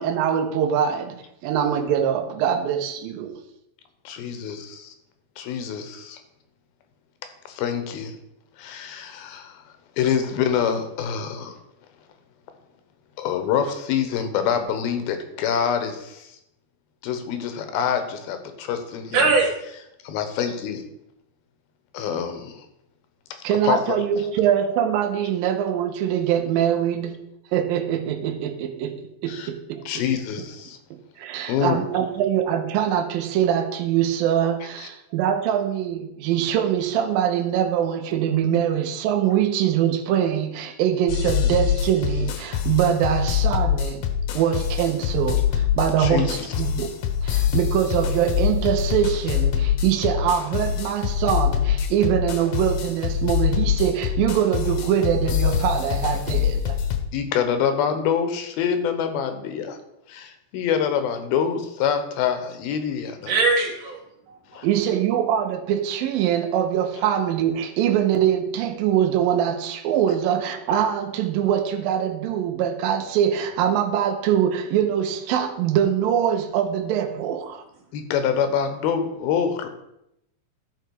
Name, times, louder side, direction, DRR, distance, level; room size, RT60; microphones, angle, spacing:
voice 1, 0.0-3.4 23.4-27.2 27.5-30.0 30.9-44.1 44.3-46.9 47.2-56.8 64.6-77.6, right 9 dB, 80° right, 6 dB, 2.5 m, -23 dB
voice 2, 4.0-4.9 5.4-6.2 7.5-8.1 8.6-9.6 10.0-11.6 13.2-16.3 17.0-19.2 20.0-20.8 21.9-22.5 23.6-24.0 29.3-29.5 29.9-30.8 31.5-31.8 46.0-46.5 57.1-59.8 60.1-63.3 64.5-64.7 77.9-79.7, left 8 dB, 90° left, 8 dB, 2.9 m, -25 dB
voice 3, 19.1-19.6 63.3-64.6, right 3 dB, 55° right, -2 dB, 2.2 m, -22 dB
sound 1, 41.1-57.0, left 9 dB, 70° left, 2.1 m, -24 dB
13.5 x 4.9 x 4.6 m, 0.81 s
omnidirectional pair, 4.2 m